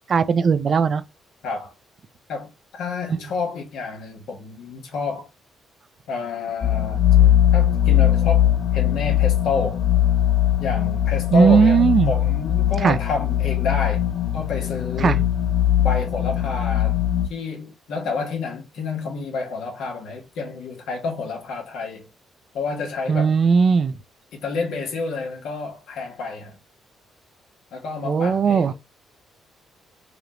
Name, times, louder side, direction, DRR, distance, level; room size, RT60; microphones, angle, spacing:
voice 1, 0.1-1.0 11.3-12.1 12.8-13.0 15.0-15.2 23.1-23.9 28.0-28.7, right 6 dB, 50° right, 0.4 m, -17 dB
voice 2, 2.3-5.3 6.1-7.0 7.5-9.8 10.6-14.0 14.3-15.2 15.8-17.0 17.3-22.1 22.5-23.3 24.3-26.6 27.7-28.7, left 4 dB, 80° left, 1.4 m, -29 dB
sound 1, 6.6-17.3, left 12 dB, 65° left, 0.7 m, -20 dB
4.9 x 2.5 x 3.0 m
cardioid pair, 90°, 0 cm